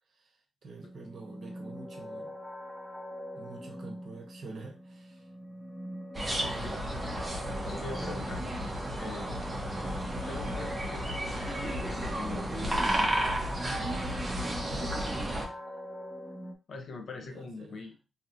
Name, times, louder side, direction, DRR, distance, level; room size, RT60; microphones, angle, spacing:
voice 1, 0.1-2.3 3.3-5.3 6.3-6.8 14.0-14.2 14.4-15.0 17.2-17.9, right 3 dB, 55° right, 3 dB, 0.9 m, -47 dB
sound 1, 0.8-16.5, equal, ahead, 0.5 m, -44 dB
sound 2, 6.1-15.5, right 1 dB, 15° right, 0.8 m, -32 dB
voice 2, 7.6-8.4 9.0-9.4 10.2-13.3 14.8-14.9 15.4-15.5 16.7-17.9, left 3 dB, 60° left, 4 dB, 0.6 m, -43 dB
3.0 x 2.7 x 2.6 m, 0.29 s
cardioid pair, 100°, 0 cm